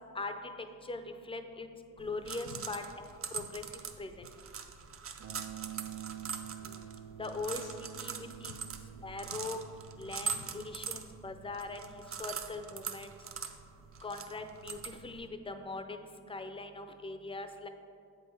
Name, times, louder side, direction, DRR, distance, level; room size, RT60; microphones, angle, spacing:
voice 1, 0.8-1.7 2.0-3.6 4.0-4.3 6.6-6.9 7.2-7.6 8.0-8.5 9.0-9.6 10.0-11.9 12.2-13.1 14.0-17.7, left 3 dB, 15° left, 8 dB, 0.5 m, -41 dB
sound 1, 2.0-15.3, right 6 dB, 35° right, 0.5 m, -43 dB
sound 2, 5.2-15.3, right 11 dB, 75° right, 0.7 m, -50 dB
voice 2, 5.7-7.0 7.6-7.7 8.4-8.6 9.3-9.4 10.0-10.5 13.9-14.0, left 8 dB, 70° left, 6 dB, 0.8 m, -55 dB
7.8 x 5.5 x 4.6 m, 2.4 s
cardioid pair, 105°, 39 cm